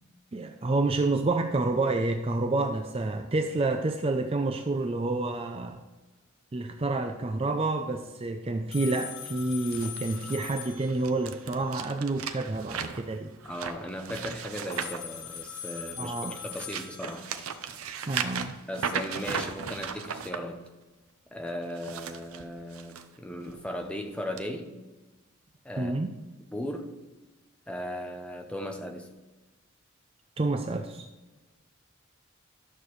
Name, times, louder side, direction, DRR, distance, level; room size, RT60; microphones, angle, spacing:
voice 1, 0.3-5.8 6.5-13.3 16.0-16.3 18.1-18.6 25.8-26.2 30.4-31.1, right 2 dB, 25° right, 6 dB, 0.4 m, -29 dB
sound 1, 8.7-12.1 14.7-18.1, left 8 dB, 75° left, 1.6 m, -42 dB
sound 2, 9.7-15.8 16.3-20.4 21.6-23.0 23.5-23.7 24.4-24.5, right 6 dB, 85° right, 0.7 m, -36 dB
voice 2, 13.4-17.3 18.7-20.6 21.3-24.7 25.6-26.0 26.5-26.9 27.7-29.1, equal, 5° left, 4 dB, 0.7 m, -37 dB
12.0 x 6.6 x 3.1 m, 1.2 s
head